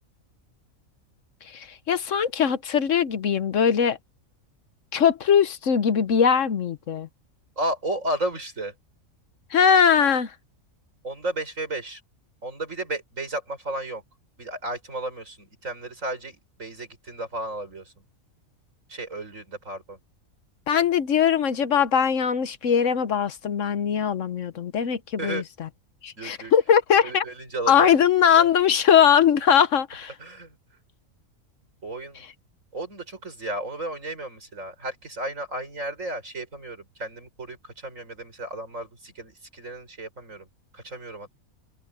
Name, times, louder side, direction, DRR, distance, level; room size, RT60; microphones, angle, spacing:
voice 1, 1.5-4.0 4.9-7.1 9.5-10.3 20.7-25.4 26.0-27.2 27.7-30.1, left 8 dB, 65° left, 1.2 m, -21 dB
voice 2, 7.6-8.7 11.0-12.0 12.4-14.0 14.4-17.9 18.9-20.0 25.2-25.4 26.2-26.5 27.0-27.9 28.3-28.5 30.2-30.5 31.8-32.2 32.7-40.5 40.7-41.3, right 1 dB, 65° right, 6.4 m, -33 dB
omnidirectional pair, 1.5 m